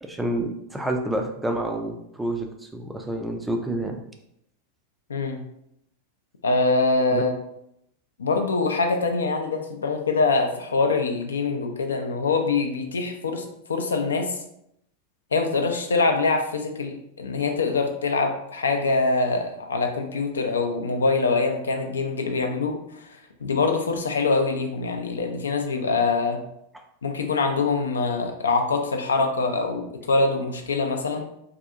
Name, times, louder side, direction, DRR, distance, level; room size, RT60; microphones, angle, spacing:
voice 1, 0.0-2.5 2.7-4.0 7.1-7.2, right 1 dB, 5° right, 3 dB, 0.3 m, -28 dB
voice 2, 5.1-5.4 6.4-7.3 8.2-14.4 15.3-22.8 23.4-26.4 27.0-31.2, left 3 dB, 70° left, 4 dB, 0.3 m, -24 dB
2.6 x 2.4 x 2.4 m, 0.76 s
figure-of-eight pair, 90°, 0 cm